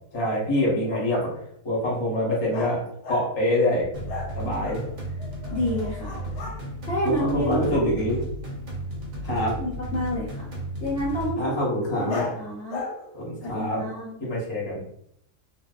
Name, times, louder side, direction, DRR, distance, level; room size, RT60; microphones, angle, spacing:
voice 1, 0.1-1.3 1.6-3.9 4.3-4.8 7.0-8.2 9.2-9.6 11.4-12.3 13.1-13.8 14.2-14.8, left 1 dB, 25° left, -5 dB, 0.7 m, -25 dB
sound 1, 2.5-3.4 4.1-6.6 12.1-14.0, left 3 dB, 85° left, 1.1 m, -36 dB
sound 2, 3.9-11.3, right 1 dB, 70° right, 1.1 m, -34 dB
voice 2, 5.5-6.2 6.8-7.8 9.6-10.5 10.8-11.5 12.0-12.8 13.4-14.1, equal, 65° left, -5 dB, 0.8 m, -29 dB
2.5 x 2.1 x 2.3 m, 0.71 s
omnidirectional pair, 1.5 m